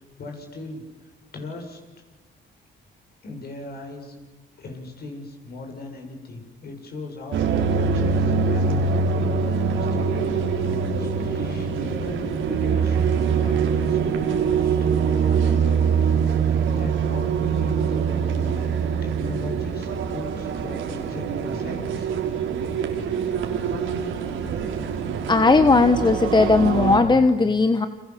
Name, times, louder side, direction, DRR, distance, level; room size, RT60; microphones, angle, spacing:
voice 1, 0.0-1.8 3.2-4.1 4.6-18.8 19.0-22.1 23.6-23.7, left 3 dB, 50° left, 3 dB, 7.3 m, -38 dB
sound 1, 7.3-27.0, right 6 dB, 80° right, 3.9 m, -24 dB
voice 2, 25.3-27.9, left 3 dB, 20° left, 10 dB, 1.3 m, -17 dB
30.0 x 25.5 x 7.7 m, 1.2 s
cardioid pair, 90°, 20 cm